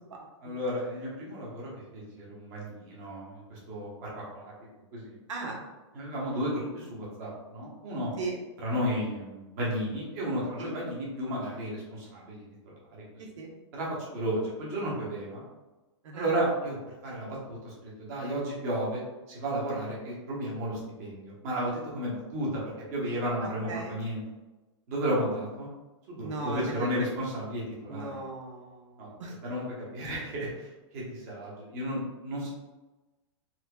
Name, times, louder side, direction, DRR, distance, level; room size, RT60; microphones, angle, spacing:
voice 1, 0.4-4.5 4.9-5.2 5.9-8.1 8.6-13.0 13.7-15.4 16.1-16.8 17.0-17.7 18.0-19.0 19.3-22.6 22.9-24.2 24.9-25.7 26.1-28.1 29.0-29.1 29.4-29.6 29.9-30.7 30.9-32.5, equal, 30° right, -6 dB, 1.0 m, -33 dB
voice 2, 5.3-5.6 8.2-8.4 10.6-10.7 13.2-13.6 16.0-16.3 23.4-23.9 26.2-27.1 27.9-29.4, right 3 dB, 85° right, -1 dB, 0.9 m, -38 dB
4.2 x 2.8 x 2.2 m, 1.1 s
hypercardioid pair, 175°, 15 cm